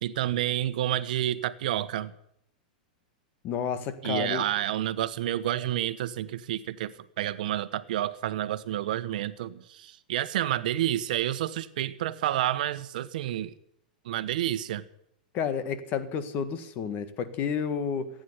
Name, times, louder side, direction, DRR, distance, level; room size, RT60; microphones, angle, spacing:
voice 1, 0.0-2.1 4.0-13.5 14.0-14.9, right 12 dB, 70° right, 14 dB, 1.1 m, -29 dB
voice 2, 3.4-4.5 15.3-18.1, left 7 dB, 40° left, 12 dB, 1.8 m, -30 dB
15.5 x 9.5 x 9.8 m, 0.72 s
hypercardioid pair, 115°, 5 cm